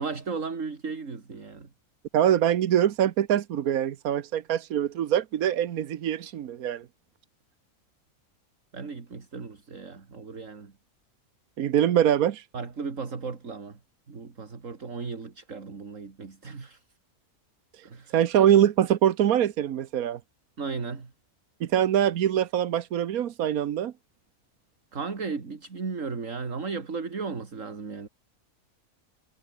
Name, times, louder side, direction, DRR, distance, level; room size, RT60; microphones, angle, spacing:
voice 1, 0.0-1.7 8.7-10.7 12.5-13.8 14.1-16.8 17.8-18.2 20.6-21.1 24.9-28.1, right 4 dB, 65° right, 2.7 m, -35 dB
voice 2, 2.1-6.8 11.6-12.4 17.8-17.9 18.1-20.2 21.6-23.9, right 10 dB, 85° right, 1.4 m, -23 dB
omnidirectional pair, 1.5 m